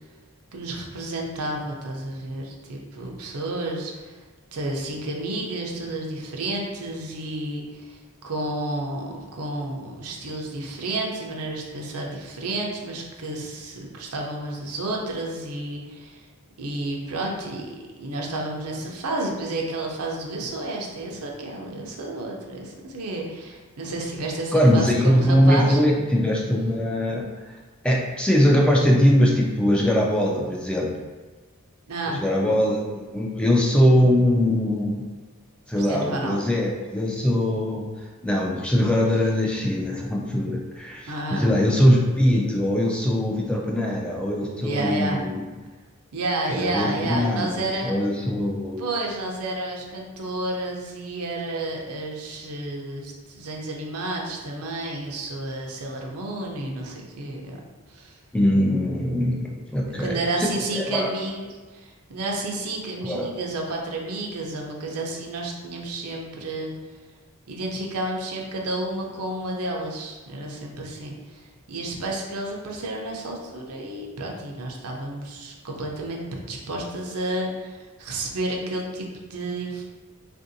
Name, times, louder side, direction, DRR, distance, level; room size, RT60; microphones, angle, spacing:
voice 1, 0.5-4.1 4.5-8.0 8.2-16.2 16.6-17.7 18.0-25.8 31.9-32.2 35.8-36.4 41.1-41.7 44.6-45.2 46.1-48.0 48.8-57.6 57.9-58.2 60.0-61.4 61.7-66.7 67.5-71.4 71.7-79.8, right 2 dB, 80° right, -1 dB, 0.6 m, -31 dB
voice 2, 24.5-27.6 27.8-30.9 32.2-35.0 35.7-37.9 38.2-45.4 46.5-48.8 58.3-60.5 60.8-61.1 63.0-63.3, equal, 5° left, -2 dB, 0.3 m, -21 dB
3.4 x 2.6 x 2.6 m, 1.3 s
head